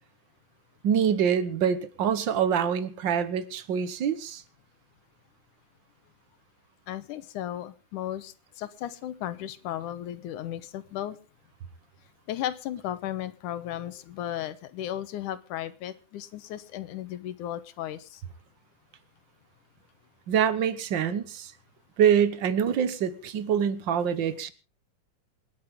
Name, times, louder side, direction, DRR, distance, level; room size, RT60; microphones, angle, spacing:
voice 1, 0.8-4.4 20.3-21.5 22.0-24.5, right 8 dB, 60° right, 13 dB, 1.2 m, -25 dB
voice 2, 6.9-11.2 12.3-18.2, left 12 dB, 85° left, 13 dB, 2.5 m, -35 dB
28.0 x 9.5 x 3.6 m, 0.34 s
omnidirectional pair, 3.5 m